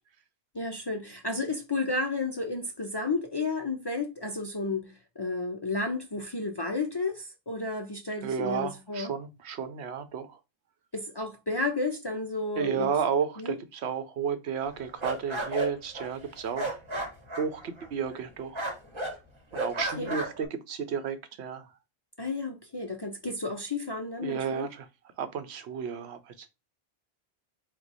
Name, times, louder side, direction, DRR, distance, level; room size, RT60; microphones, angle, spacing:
voice 1, 0.5-9.1 10.9-12.9 13.4-13.6 20.0-20.2 22.2-24.7, left 3 dB, 40° left, 0.4 m, -32 dB
voice 2, 8.2-10.4 12.6-16.8 17.4-18.7 19.5-21.7 24.2-24.9 25.2-26.5, right 7 dB, 90° right, 1.0 m, -32 dB
sound 1, 14.7-18.3 18.5-19.2 19.5-20.4, right 1 dB, 30° right, 1.1 m, -34 dB
4.5 x 2.4 x 4.0 m
omnidirectional pair, 1.1 m